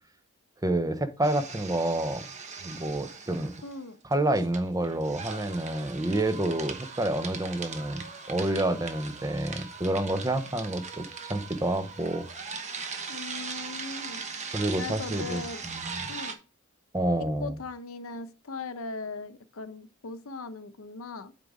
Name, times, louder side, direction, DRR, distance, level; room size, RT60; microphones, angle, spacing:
voice 1, 0.6-2.3 2.6-3.5 4.0-12.3 14.5-16.0 16.9-17.6, right 1 dB, 15° right, 0.7 m, -29 dB
Overburdened Shredder, 1.2-3.8 4.1-16.4, right 5 dB, 35° right, 1.0 m, -40 dB
voice 2, 3.6-4.0 13.1-14.2 14.8-15.6 16.1-16.4 17.4-21.3, left 4 dB, 75° left, 0.8 m, -39 dB
8.5 x 3.8 x 4.7 m
head